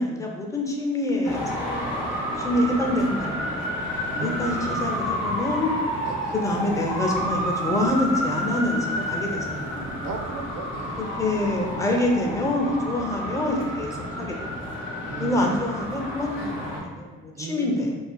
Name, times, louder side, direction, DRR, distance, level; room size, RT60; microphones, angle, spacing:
voice 1, 0.0-2.1 2.4-3.3 3.6-3.7 4.2-5.7 6.4-9.8 11.2-14.4 15.2-17.9, left 1 dB, 10° left, 0 dB, 0.5 m, -26 dB
Traffic noise roadway noise, 1.2-16.8, equal, 90° left, 0.7 m, -30 dB
voice 2, 4.1-4.8 5.9-6.4 10.0-11.0 15.0-15.7 17.3-17.8, right 4 dB, 60° right, 3 dB, 0.5 m, -36 dB
2.4 x 2.3 x 2.2 m, 1.3 s
supercardioid pair, 50°, 30 cm